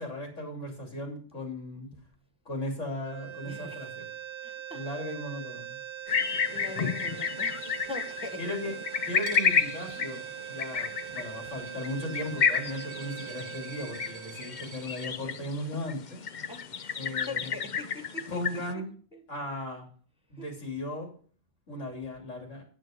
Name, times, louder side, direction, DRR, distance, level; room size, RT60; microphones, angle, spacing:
voice 1, 0.0-1.9 2.5-4.0 4.7-5.8 8.4-8.7 9.1-16.2 17.0-17.5 18.3-18.9 19.3-19.9 20.3-21.1 21.7-22.6, left 1 dB, 90° left, 3.7 m, -37 dB
sound 1, 3.0-15.2, right 10 dB, 50° right, 0.3 m, -42 dB
voice 2, 3.4-3.9 4.4-4.9 6.4-8.7 10.7-11.5 16.5-18.8 19.1-19.2 20.4-20.5, left 2 dB, 5° right, 1.5 m, -44 dB
sound 2, 6.1-18.7, left 6 dB, 45° left, 0.7 m, -31 dB
Coin (dropping), 9.2-15.1, right 7 dB, 80° right, 1.4 m, -49 dB
9.4 x 8.1 x 5.2 m
omnidirectional pair, 1.2 m